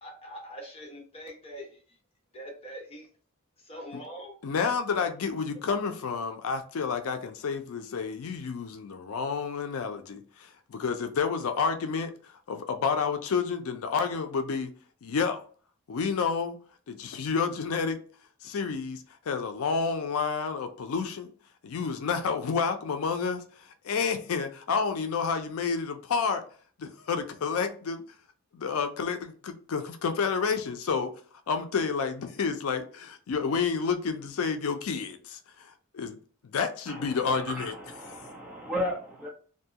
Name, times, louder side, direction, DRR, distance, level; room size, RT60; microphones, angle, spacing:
voice 1, 0.0-2.0 2.3-3.1 3.6-4.4, equal, 30° left, 0.8 m, -43 dB
voice 2, 4.4-12.1 12.5-14.7 15.0-15.4 15.9-16.6 16.9-18.0 18.4-21.3 21.6-26.4 26.8-28.0 28.5-31.1 31.5-35.7 35.9-36.2 36.4-37.7, left 5 dB, 85° left, 0.4 m, -30 dB
voice 3, 36.9-39.3, equal, 5° right, 0.6 m, -35 dB
2.6 x 2.3 x 2.7 m
head